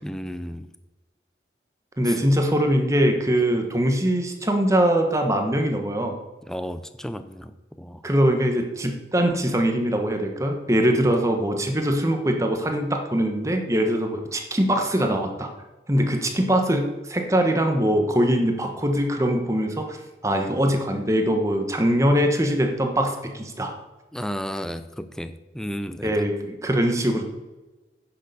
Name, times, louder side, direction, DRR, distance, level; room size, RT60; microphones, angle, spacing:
voice 1, 0.0-0.7 2.0-2.2 6.5-8.1 24.1-26.2, equal, 5° left, 10 dB, 0.4 m, -33 dB
voice 2, 2.0-6.2 8.0-15.5 15.9-20.0 20.2-23.7 26.0-27.2, equal, 15° right, 3 dB, 1.2 m, -22 dB
9.9 x 6.5 x 6.8 m, 1.1 s
head